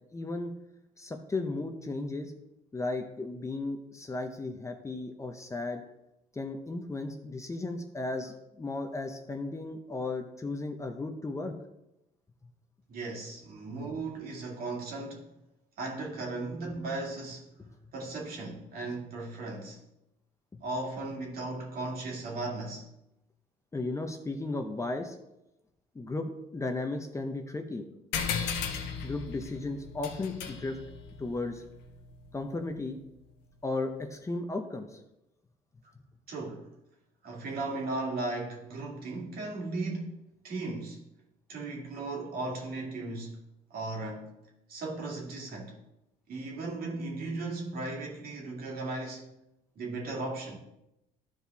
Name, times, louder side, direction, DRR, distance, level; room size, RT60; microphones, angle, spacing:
voice 1, 0.1-0.5 1.0-2.3 2.7-5.8 6.3-11.5 17.6-17.7 20.5-20.6 23.7-25.2 25.9-27.9 29.0-30.8 31.2-31.6 32.3-33.0 33.6-35.0, left 2 dB, 15° left, 0.8 m, -35 dB
voice 2, 12.9-15.3 15.8-17.4 17.9-19.8 20.6-22.9 36.3-36.7 37.2-40.1 40.4-41.0 41.5-43.4 43.7-44.3 44.7-45.8 46.3-49.3 49.8-50.6, right 2 dB, 60° right, 2.3 m, -36 dB
sound 1, 28.1-33.0, left 6 dB, 85° left, 1.2 m, -37 dB
13.0 x 4.7 x 3.4 m
cardioid pair, 110°, 17 cm